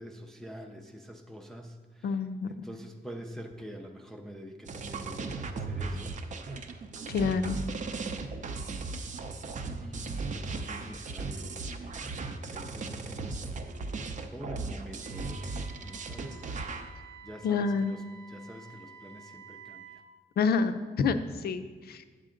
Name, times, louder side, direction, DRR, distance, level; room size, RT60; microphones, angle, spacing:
voice 1, 0.0-2.2 2.5-6.2 7.9-8.4 9.7-13.5 13.9-14.0 14.3-16.3 17.2-18.0 18.3-20.0, equal, ahead, 3 dB, 0.4 m, -46 dB
voice 2, 2.0-2.5 7.1-7.6 17.4-18.0 20.4-22.1, left 5 dB, 65° left, 10 dB, 0.5 m, -28 dB
sound 1, 4.7-16.9, right 3 dB, 45° right, 0.6 m, -37 dB
Wind instrument woodwind instrument, 15.0-20.1, right 5 dB, 90° right, 0.9 m, -51 dB
9.1 x 7.6 x 3.8 m, 1.4 s
wide cardioid pair, 170°, 17 cm